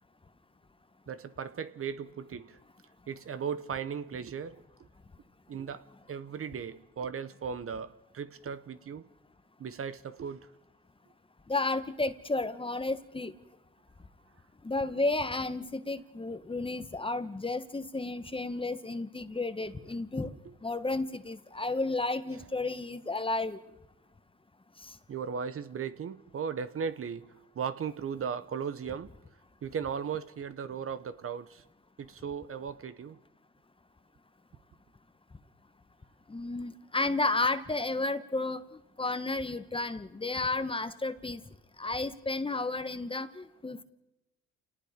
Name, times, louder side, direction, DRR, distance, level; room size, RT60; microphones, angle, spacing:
voice 1, 1.1-2.6 3.1-4.6 5.5-9.0 9.6-10.4 25.1-29.1 29.6-31.6 32.0-33.2, right 7 dB, 50° right, 1.0 m, -37 dB
voice 2, 11.5-13.3 14.6-20.3 20.6-23.6 24.8-24.9 36.3-38.6 39.0-41.4 41.8-43.8, left 2 dB, 15° left, 1.3 m, -32 dB
29.0 x 19.0 x 5.2 m
cardioid pair, 90°, 30 cm